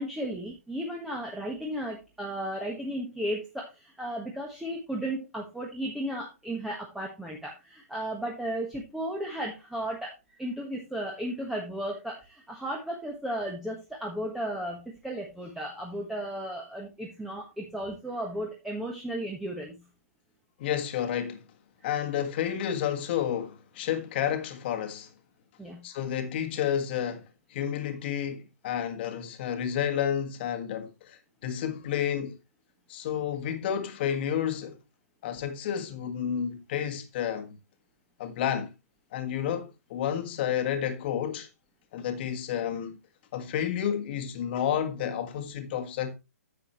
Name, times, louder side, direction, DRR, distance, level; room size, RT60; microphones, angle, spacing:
voice 1, 0.0-19.8 25.6-25.8, right 1 dB, 5° right, 1.3 m, -35 dB
voice 2, 20.6-21.4 21.8-25.1 25.8-32.4 32.9-34.8 35.2-37.6 38.2-38.7 39.1-41.5 41.9-43.0 43.3-46.1, left 9 dB, 40° left, 1.6 m, -30 dB
10.0 x 7.7 x 3.1 m
hypercardioid pair, 145°, 9 cm